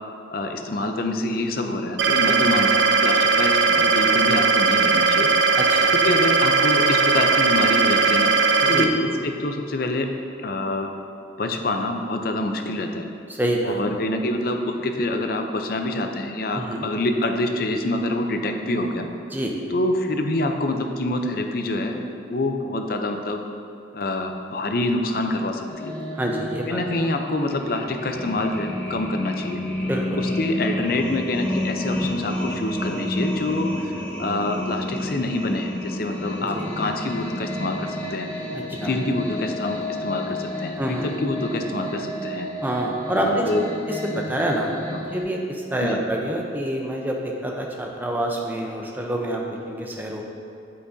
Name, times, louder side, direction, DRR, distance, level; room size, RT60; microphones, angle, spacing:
voice 1, 0.3-5.3 6.0-8.3 8.7-10.1 10.4-10.9 11.4-13.1 13.6-19.1 19.7-23.4 23.9-26.0 26.7-29.6 30.2-38.3 38.8-42.5 43.1-43.7 44.9-45.1 45.8-46.0, left 2 dB, 50° left, 5 dB, 0.5 m, -26 dB
sound 1, 2.0-8.8, right 4 dB, 70° right, 0.5 m, -18 dB
voice 2, 5.6-5.9 8.6-8.9 13.3-13.8 16.5-16.9 19.3-19.5 26.1-26.8 29.8-30.2 36.4-36.6 38.5-38.9 40.8-41.1 42.6-43.5 43.9-44.8 45.1-50.2, right 1 dB, 10° right, 0 dB, 0.6 m, -27 dB
sound 2, 25.7-45.2, left 1 dB, 10° left, 1.0 m, -31 dB
8.5 x 7.3 x 2.7 m, 2.6 s
head